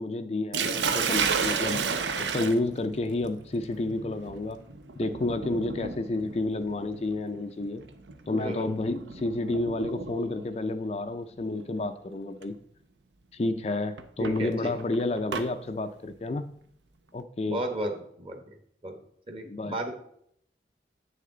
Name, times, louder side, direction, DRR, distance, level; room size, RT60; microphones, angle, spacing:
voice 1, 0.0-1.8 2.2-4.6 5.0-7.8 8.3-12.5 13.3-16.5 17.1-17.6 19.4-19.8, left 2 dB, 35° left, 8 dB, 0.4 m, -30 dB
Sink (filling or washing), 0.5-10.5 11.6-11.9 12.4-12.5 14.0-15.5, right 5 dB, 90° right, 0.7 m, -32 dB
voice 2, 8.3-8.7 14.2-14.7 17.4-18.5 18.8-18.9 19.3-19.9, right 1 dB, 30° right, 5 dB, 1.2 m, -33 dB
8.7 x 6.6 x 3.8 m, 0.69 s
head